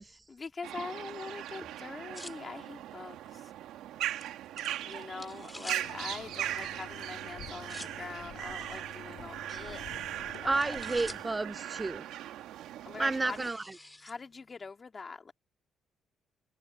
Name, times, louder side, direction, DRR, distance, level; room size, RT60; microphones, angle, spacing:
voice 1, 0.3-3.5 4.8-9.8 10.4-10.8 12.8-13.5 14.0-15.3, left 4 dB, 35° left, 3.2 m, -43 dB
sound 1, 0.6-13.5, right 12 dB, 90° right, 1.8 m, -39 dB
sound 2, 0.7-14.7, left 1 dB, 10° left, 3.0 m, -53 dB
Bathtub (filling or washing), 5.8-11.2, left 11 dB, 75° left, 7.9 m, -50 dB
voice 2, 10.5-12.0 13.0-13.6, right 3 dB, 20° right, 0.4 m, -31 dB
cardioid pair, 90°, 0 cm